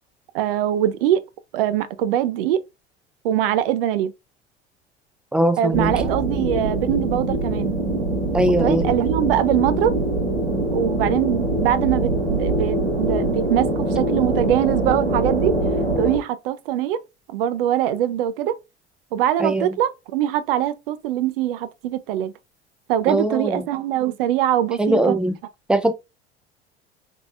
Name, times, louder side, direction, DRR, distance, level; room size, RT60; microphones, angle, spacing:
voice 1, 0.3-1.2 1.5-2.6 3.2-4.1 5.6-7.8 8.6-10.0 10.7-15.5 16.0-17.0 17.3-18.6 19.1-22.3 22.9-25.2, right 11 dB, 60° right, 0.5 m, -22 dB
voice 2, 5.3-5.9 8.3-8.9 19.4-19.7 23.1-23.6 24.8-25.4 25.7-25.9, right 1 dB, 5° right, 0.5 m, -20 dB
sound 1, 5.7-16.2, right 2 dB, 90° right, 1.2 m, -23 dB
3.8 x 3.7 x 2.3 m
figure-of-eight pair, 70°, 33 cm